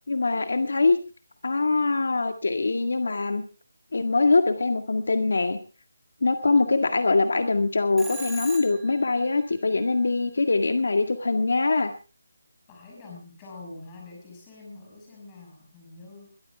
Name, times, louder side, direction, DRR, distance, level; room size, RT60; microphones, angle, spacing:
voice 1, 0.1-1.0 1.4-3.4 3.9-5.6 6.2-11.9, left 3 dB, 65° left, 7 dB, 1.8 m, -23 dB
Telephone, 8.0-9.1, right 2 dB, 5° right, 2.2 m, -38 dB
voice 2, 12.7-16.3, left 3 dB, 15° left, -1 dB, 6.1 m, -45 dB
22.0 x 13.5 x 3.5 m, 0.33 s
hypercardioid pair, 175°, 0 cm